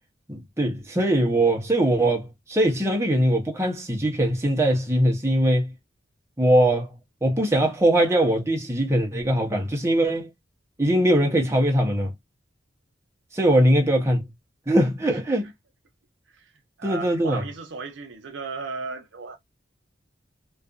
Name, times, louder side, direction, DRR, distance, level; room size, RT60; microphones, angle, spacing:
voice 1, 0.3-5.7 6.4-6.9 7.2-10.3 10.8-12.1 13.3-14.3 14.7-15.5 16.8-17.4, right 1 dB, 15° right, 0.8 m, -21 dB
voice 2, 16.8-19.4, right 4 dB, 75° right, 0.7 m, -35 dB
2.6 x 2.4 x 2.4 m
head